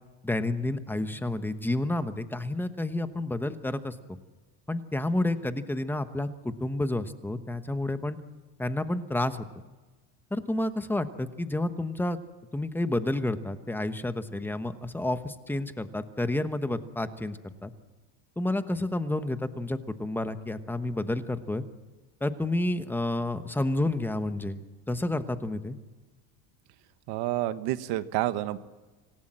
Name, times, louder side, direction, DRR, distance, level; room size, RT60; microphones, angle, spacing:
voice 1, 0.2-4.2 4.7-8.2 8.6-9.4 10.3-12.2 12.5-17.7 18.4-21.6 22.2-25.8, left 1 dB, 5° left, 10 dB, 1.1 m, -30 dB
voice 2, 27.1-28.6, right 15 dB, 60° right, 12 dB, 1.4 m, -29 dB
26.5 x 18.0 x 7.6 m, 1.2 s
cardioid pair, 140°, 43 cm